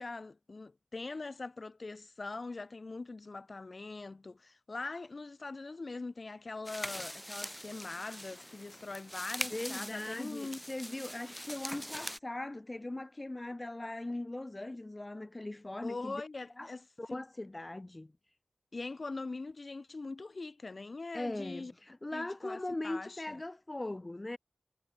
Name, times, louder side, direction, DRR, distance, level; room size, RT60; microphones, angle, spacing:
voice 1, 0.0-10.6 15.8-16.8 18.7-21.7 22.1-23.4, left 3 dB, 55° left, 1.2 m, -42 dB
sound 1, 6.6-12.2, equal, 5° left, 4.8 m, -42 dB
voice 2, 9.5-16.2 16.6-16.7 17.0-18.1 21.1-24.4, left 2 dB, 30° left, 1.5 m, -40 dB
wide cardioid pair, 70°, 0 cm